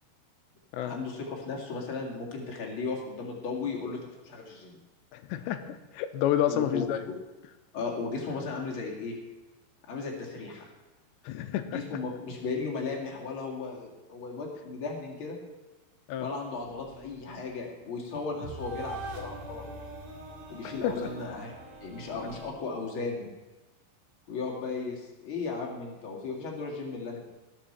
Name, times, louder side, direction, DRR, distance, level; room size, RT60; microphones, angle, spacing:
voice 1, 0.8-4.0 4.2-4.8 6.5-7.2 7.7-9.1 9.9-10.7 11.7-15.4 16.2-19.6 20.5-21.5 21.8-23.3 24.3-27.2, left 4 dB, 40° left, -1 dB, 2.0 m, -35 dB
voice 2, 5.1-7.0 11.3-11.8 16.1-16.3 20.6-21.1, left 11 dB, 90° left, 9 dB, 2.9 m, -30 dB
sound 1, 16.6-22.5, right 2 dB, 55° right, 2.8 m, -43 dB
19.0 x 7.4 x 4.4 m, 1.1 s
omnidirectional pair, 5.0 m